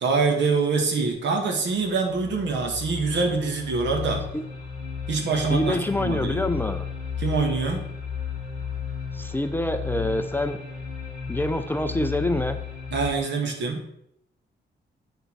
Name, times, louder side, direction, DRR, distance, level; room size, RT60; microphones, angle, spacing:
voice 1, 0.0-4.2 5.1-6.5 7.2-7.9 12.9-13.8, right 4 dB, 70° right, 3 dB, 1.8 m, -25 dB
sound 1, 1.7-13.1, left 7 dB, 35° left, 3.3 m, -34 dB
voice 2, 5.5-6.8 9.1-10.6 11.3-12.6, left 1 dB, 10° left, 8 dB, 0.4 m, -26 dB
8.0 x 6.5 x 4.6 m, 0.76 s
wide cardioid pair, 160°, 19 cm